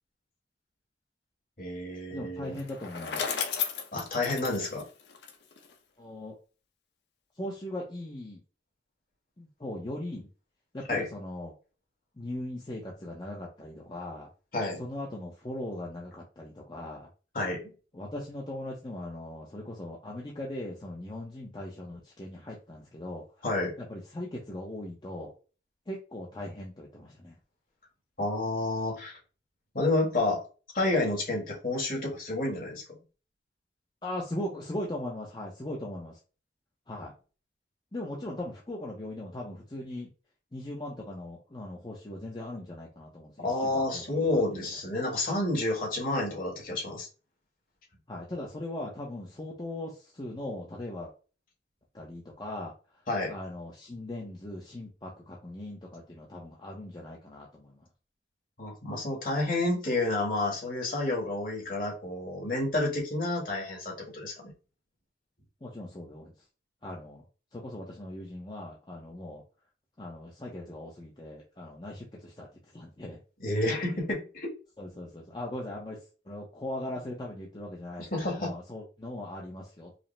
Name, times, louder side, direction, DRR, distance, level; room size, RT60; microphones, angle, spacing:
voice 1, 1.6-2.6 3.9-4.8 10.9-11.1 14.5-14.8 17.3-17.7 23.4-23.7 28.2-29.2 29.7-30.4 30.7-33.0 43.4-47.1 53.1-53.3 58.6-64.5 73.4-74.5 78.0-78.5, left 2 dB, 50° left, -2 dB, 1.6 m, -30 dB
voice 2, 2.1-3.3 6.0-6.3 7.4-8.4 9.4-10.3 10.7-11.5 12.2-14.3 14.8-17.1 17.9-23.2 23.8-25.3 25.9-27.4 34.0-36.2 36.9-37.1 37.9-40.1 40.5-44.6 48.1-51.1 51.9-52.7 53.3-57.8 65.6-66.3 66.8-67.2 67.5-69.4 70.0-72.5 72.7-73.2 74.8-79.9, left 1 dB, 25° left, -3 dB, 0.6 m, -39 dB
Bicycle, 2.5-5.7, left 7 dB, 80° left, 0.7 m, -34 dB
4.9 x 2.0 x 3.2 m, 0.35 s
head